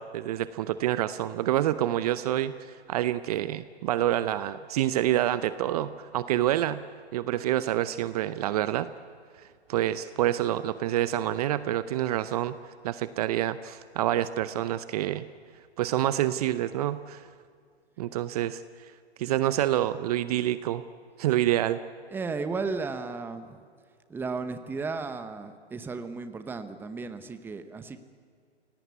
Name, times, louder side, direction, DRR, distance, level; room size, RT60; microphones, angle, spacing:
voice 1, 0.0-6.8 7.1-8.9 9.4-12.5 12.8-15.2 15.8-17.2 18.0-18.6 19.2-20.8 21.2-21.8, right 13 dB, 35° right, 14 dB, 0.7 m, -27 dB
voice 2, 22.1-23.6 24.1-28.0, right 4 dB, 5° right, 10 dB, 0.9 m, -34 dB
28.0 x 17.5 x 8.2 m, 2.1 s
hypercardioid pair, 130°, 33 cm